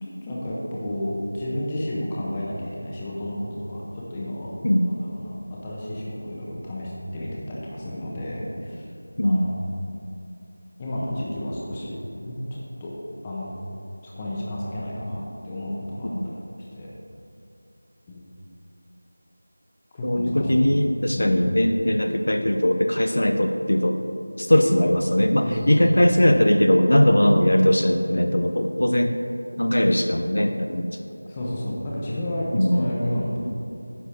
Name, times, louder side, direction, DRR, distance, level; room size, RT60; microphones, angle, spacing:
voice 1, 0.0-4.5 4.8-5.3 5.6-8.8 9.2-9.7 10.8-12.9 13.2-13.5 14.0-16.4 16.7-16.9 18.1-18.2 19.9-20.6 21.1-21.5 25.4-26.0 31.3-33.4, left 1 dB, 15° left, -6 dB, 1.1 m, -31 dB
voice 2, 20.0-24.0 24.4-29.2 29.6-30.9 32.5-32.8, left 1 dB, 75° left, 6 dB, 0.6 m, -20 dB
10.0 x 4.1 x 6.7 m, 2.7 s
figure-of-eight pair, 175°, 0 cm